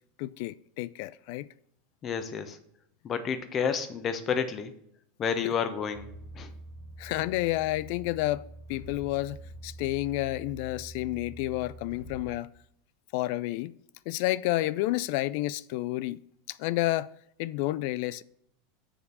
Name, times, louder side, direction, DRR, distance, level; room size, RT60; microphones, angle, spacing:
voice 1, 0.2-1.5 5.4-5.5 7.0-12.5 13.1-13.7 14.1-16.2 16.5-17.1 17.4-18.2, left 17 dB, 55° left, 0.3 m, -30 dB
voice 2, 2.0-2.6 3.0-4.7 5.2-6.1 6.4-6.5, left 6 dB, 35° left, 1.1 m, -30 dB
sound 1, 5.9-12.4, right 1 dB, 80° left, 4.2 m, -46 dB
6.9 x 5.1 x 6.9 m
figure-of-eight pair, 85°, 0 cm